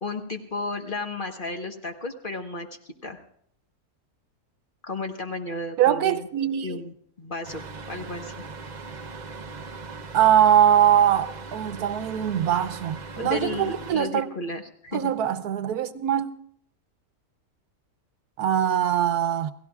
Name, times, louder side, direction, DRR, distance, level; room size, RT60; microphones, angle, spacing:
voice 1, 0.0-2.7 3.0-3.2 4.8-6.3 6.6-6.9 7.2-8.3 13.2-15.1, left 3 dB, 35° left, 1.3 m, -33 dB
voice 2, 5.8-6.8 10.1-14.3 14.9-16.3 18.4-19.5, right 10 dB, 85° right, 1.3 m, -22 dB
sound 1, 7.4-13.9, right 4 dB, 45° right, 0.6 m, -39 dB
29.0 x 17.0 x 2.4 m
omnidirectional pair, 1.6 m